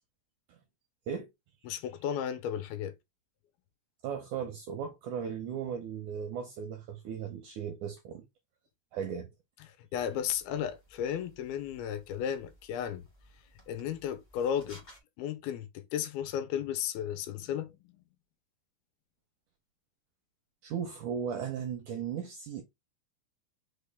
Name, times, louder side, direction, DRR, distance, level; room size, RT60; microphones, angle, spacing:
voice 1, 1.7-2.9 9.6-13.1 13.7-14.8 15.2-17.8, left 9 dB, 85° left, 2.5 m, -34 dB
voice 2, 4.0-8.3 8.9-9.3 20.6-22.6, right 7 dB, 85° right, 1.7 m, -37 dB
sound 1, 9.9-15.0, left 1 dB, 40° left, 0.6 m, -58 dB
5.8 x 2.2 x 3.4 m
omnidirectional pair, 4.4 m